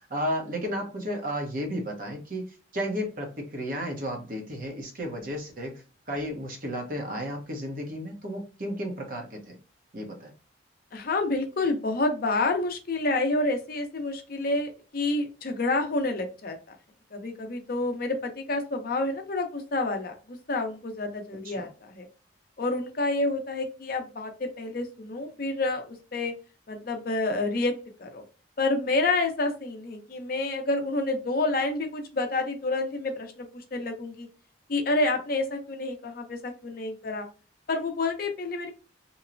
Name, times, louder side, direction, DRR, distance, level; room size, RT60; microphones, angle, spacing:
voice 1, 0.1-2.4 2.7-5.8 6.1-9.5 9.9-10.3 21.4-21.7, equal, 45° right, 0.7 m, -33 dB
voice 2, 10.9-16.6 17.1-20.1 20.5-22.1 22.6-26.3 26.7-27.7 28.0-28.2 28.6-34.3 34.7-37.3 37.7-38.7, left 2 dB, 50° left, 0.5 m, -28 dB
2.9 x 2.0 x 2.4 m
head